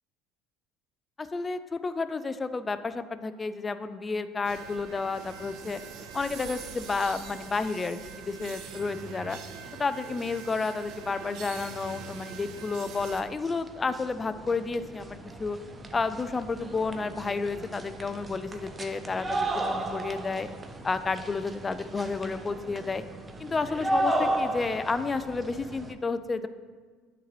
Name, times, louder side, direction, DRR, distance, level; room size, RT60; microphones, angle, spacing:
voice 1, 1.2-5.8 6.1-9.4 9.8-15.6 15.9-20.5 20.8-23.0 23.4-26.5, left 4 dB, 25° left, 12 dB, 0.4 m, -31 dB
sound 1, 4.4-13.2, right 6 dB, 65° right, 0.7 m, -43 dB
sound 2, 12.9-13.0 13.2-25.9, right 1 dB, 25° right, 0.6 m, -34 dB
9.1 x 4.0 x 3.0 m, 1.5 s
hypercardioid pair, 80°, 0 cm